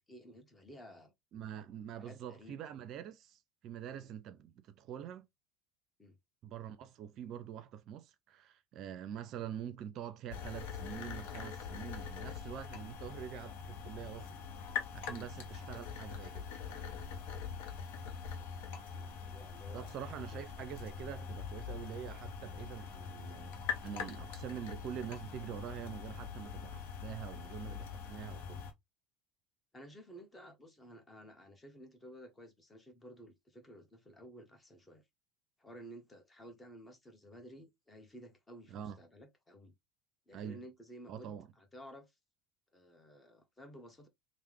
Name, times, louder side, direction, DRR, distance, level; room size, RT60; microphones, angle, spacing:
voice 1, 0.0-1.1 1.9-2.7 4.0-4.1 6.0-6.2 15.1-15.3 18.1-20.4 29.7-35.0 35.6-39.7 40.3-42.1 42.7-44.1, equal, 20° left, 1.1 m, -54 dB
voice 2, 1.3-5.3 6.4-14.3 14.9-16.5 19.7-28.6 38.7-39.0 40.3-40.6 41.1-41.5, right 9 dB, 55° right, 0.4 m, -45 dB
sound 1, 10.3-28.7, left 6 dB, 70° left, 0.7 m, -43 dB
3.3 x 2.1 x 3.1 m
hypercardioid pair, 80°, 0 cm